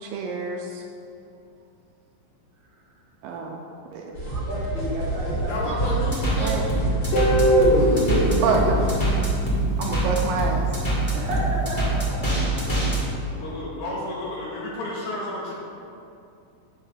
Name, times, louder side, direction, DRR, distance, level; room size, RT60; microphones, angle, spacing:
voice 1, 0.0-0.8 3.2-3.6 3.9-4.1 6.4-6.6 8.4-8.8 9.8-10.6, right 4 dB, 80° right, 1 dB, 2.0 m, -27 dB
sound 1, 4.1-9.2, equal, 45° left, 1.8 m, -30 dB
voice 2, 4.1-5.7 7.8-8.4 11.1-12.0, right 2 dB, 50° right, -8 dB, 2.9 m, -31 dB
voice 3, 5.5-6.7 12.4-12.9 13.1-15.5, left 1 dB, 65° left, -5 dB, 2.3 m, -31 dB
sound 2, 5.8-13.0, right 1 dB, 30° left, 0.9 m, -24 dB
Guitar, 7.1-10.1, equal, 85° left, 3.4 m, -22 dB
9.7 x 3.3 x 6.6 m, 2.6 s
omnidirectional pair, 4.5 m